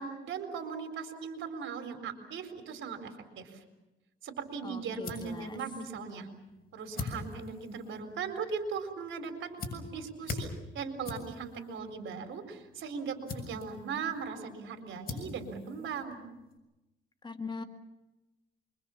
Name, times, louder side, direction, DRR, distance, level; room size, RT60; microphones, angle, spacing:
voice 1, 0.0-3.6 4.2-6.3 6.7-16.2, right 5 dB, 75° right, 7 dB, 4.2 m, -39 dB
Briquet sons, 4.5-16.6, left 3 dB, 50° left, 7.0 m, -45 dB
voice 2, 4.6-5.6 17.2-17.6, left 4 dB, 25° left, 6 dB, 2.3 m, -41 dB
26.0 x 24.0 x 7.2 m, 1.0 s
cardioid pair, 90°, 20 cm